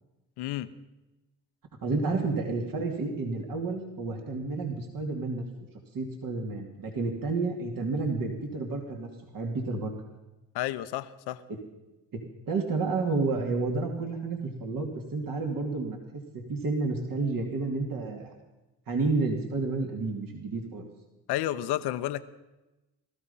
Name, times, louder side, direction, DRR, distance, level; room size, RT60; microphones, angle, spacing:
voice 1, 0.4-0.7 10.5-11.4 21.3-22.2, left 14 dB, 85° left, 11 dB, 0.9 m, -31 dB
voice 2, 1.8-5.4 5.9-9.1 9.3-9.9 11.5-11.6 12.1-18.3 18.9-20.8, right 3 dB, 60° right, 2 dB, 2.6 m, -30 dB
18.5 x 13.5 x 5.6 m, 1.0 s
supercardioid pair, 70°, 39 cm